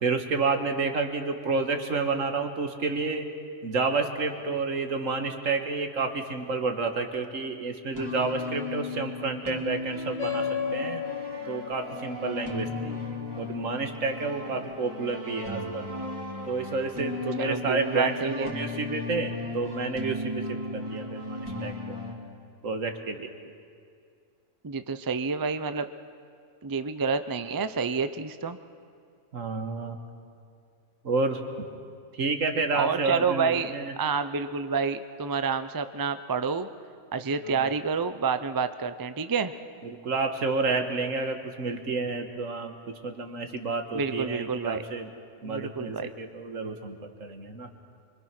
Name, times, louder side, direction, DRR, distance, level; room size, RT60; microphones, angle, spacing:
voice 1, 0.0-3.3 3.6-11.0 11.5-13.0 13.4-15.9 16.5-21.7 22.6-23.3 29.3-30.0 31.0-31.7 32.1-33.9 37.5-37.7 39.8-45.1 45.4-47.7, right 3 dB, 65° right, 6 dB, 1.8 m, -30 dB
sound 1, 7.9-22.1, left 2 dB, 15° right, 2.7 m, -36 dB
sound 2, 10.2-15.1, left 9 dB, 30° left, 2.4 m, -36 dB
voice 2, 17.4-18.5 24.6-25.9 26.6-28.6 32.7-36.7 37.1-39.5 43.9-44.8 45.4-46.1, right 5 dB, 35° right, 11 dB, 0.3 m, -29 dB
24.5 x 24.0 x 6.0 m, 2.3 s
omnidirectional pair, 1.5 m